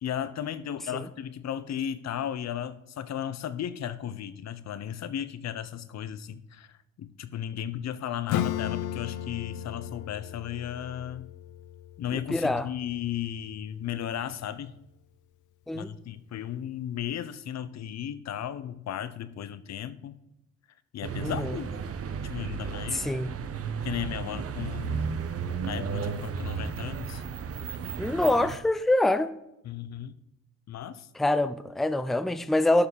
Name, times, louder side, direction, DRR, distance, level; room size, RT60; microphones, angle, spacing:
voice 1, 0.0-6.7 7.0-11.3 12.0-14.7 15.7-20.2 20.9-21.7 22.2-23.1 23.8-25.2 25.6-27.2 29.6-30.1 30.7-31.1, left 10 dB, 60° left, 0.9 m, -35 dB
Acoustic guitar / Strum, 8.3-13.5, left 11 dB, 85° left, 0.5 m, -35 dB
voice 2, 12.1-12.7 15.7-16.0 21.2-21.6 22.9-23.3 28.0-29.3 31.1-32.9, left 1 dB, ahead, 0.5 m, -25 dB
sound 1, 21.0-28.6, right 6 dB, 50° right, 1.0 m, -34 dB
12.0 x 5.6 x 6.4 m
cardioid pair, 90°, 30 cm